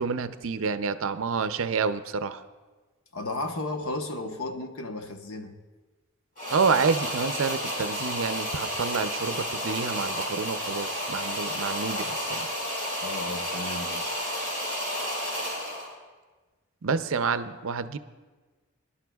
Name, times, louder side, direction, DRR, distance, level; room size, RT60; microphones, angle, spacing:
voice 1, 0.0-2.4 6.5-12.5 16.8-18.0, right 5 dB, 65° right, 0.5 m, -28 dB
voice 2, 3.1-5.5 13.0-14.2, left 2 dB, 70° left, 1.0 m, -34 dB
sound 1, 6.4-15.9, equal, 40° left, 4.8 m, -31 dB
25.5 x 11.5 x 2.3 m
head